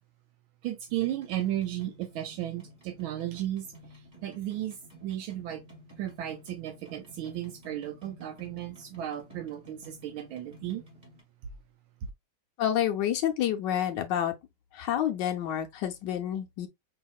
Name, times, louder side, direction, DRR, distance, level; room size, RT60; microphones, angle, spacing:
voice 1, 0.6-3.7 3.9-4.7 5.0-5.6 6.0-10.8, right 12 dB, 80° right, 1.4 m, -34 dB
sound 1, 0.9-11.2, right 1 dB, 20° right, 1.9 m, -52 dB
voice 2, 12.6-14.3 14.7-16.7, left 10 dB, 70° left, 1.1 m, -28 dB
5.4 x 2.8 x 2.3 m
omnidirectional pair, 2.3 m